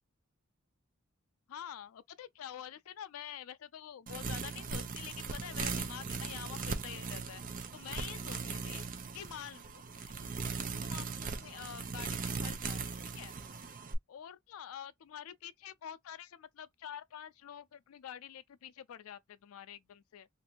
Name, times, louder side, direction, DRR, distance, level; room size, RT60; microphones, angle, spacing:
voice 1, 1.5-8.9 9.1-13.4 14.1-20.3, left 9 dB, 90° left, 0.4 m, -47 dB
sound 1, 4.1-13.9, right 4 dB, 40° right, 0.5 m, -39 dB
2.6 x 2.5 x 2.9 m
head